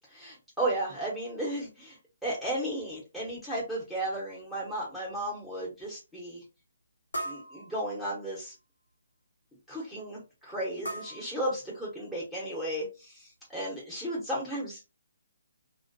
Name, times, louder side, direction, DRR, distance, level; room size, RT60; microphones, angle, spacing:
voice 1, 0.1-6.4 7.2-8.5 9.7-14.8, right 1 dB, ahead, -6 dB, 0.9 m, -34 dB
sound 1, 3.8-3.9 4.5-4.6 5.2-5.3 7.1-8.3 10.8-12.1, right 1 dB, 85° left, 0.9 m, -40 dB
2.4 x 2.2 x 2.5 m, 0.28 s
hypercardioid pair, 145°, 0 cm